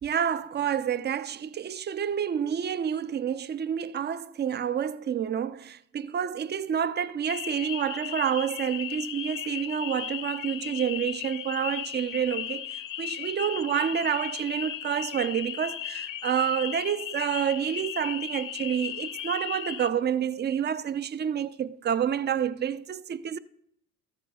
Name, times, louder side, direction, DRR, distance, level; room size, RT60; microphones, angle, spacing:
voice 1, 0.0-23.4, right 8 dB, 25° right, 0.3 m, -29 dB
sound 1, 7.3-19.9, left 12 dB, 40° left, 0.7 m, -36 dB
13.5 x 9.3 x 2.3 m
hypercardioid pair, 60°, 49 cm